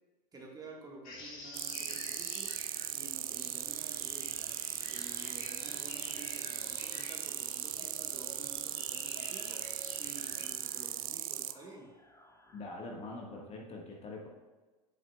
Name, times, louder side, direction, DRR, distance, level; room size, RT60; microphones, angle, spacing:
voice 1, 0.3-2.6 2.9-4.5 4.9-9.6 10.0-11.9, right 3 dB, 20° right, -1 dB, 1.5 m, -51 dB
sound 1, 1.0-10.5, left 2 dB, 50° left, 1.8 m, -49 dB
sound 2, 1.5-11.5, right 12 dB, 80° right, 0.4 m, -38 dB
sound 3, 3.2-12.7, left 1 dB, 20° left, 1.3 m, -61 dB
voice 2, 12.5-14.3, left 2 dB, 35° left, 0 dB, 1.4 m, -43 dB
7.7 x 7.2 x 2.3 m, 1.3 s
hypercardioid pair, 80°, 18 cm